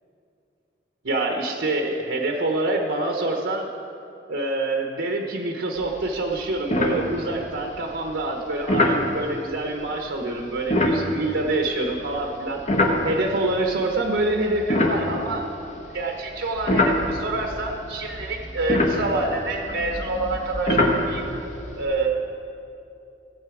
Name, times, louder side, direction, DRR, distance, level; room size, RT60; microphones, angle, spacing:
voice 1, 1.0-3.7 4.3-12.7 13.0-15.5 15.9-21.3 21.7-22.3, right 2 dB, 70° right, 2 dB, 0.9 m, -26 dB
sound 1, 5.8-6.1 6.3-6.4 6.7-7.5 8.7-9.0 10.6-13.5 14.1-15.9 16.4-21.8, left 1 dB, 35° left, 1.0 m, -24 dB
15.5 x 7.7 x 4.8 m, 2.7 s
head